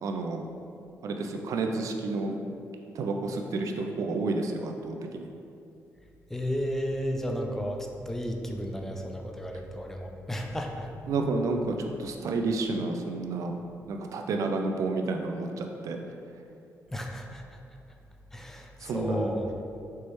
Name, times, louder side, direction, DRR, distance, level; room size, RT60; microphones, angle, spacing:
voice 1, 0.0-0.5 1.0-2.4 2.9-5.3 11.1-13.5 13.9-16.0 18.8-19.3, right 3 dB, 70° right, 3 dB, 0.4 m, -30 dB
voice 2, 6.3-10.9 16.9-17.4 18.3-19.5, equal, 5° left, 2 dB, 0.4 m, -33 dB
4.5 x 3.1 x 3.0 m, 2.6 s
cardioid pair, 85°, 6 cm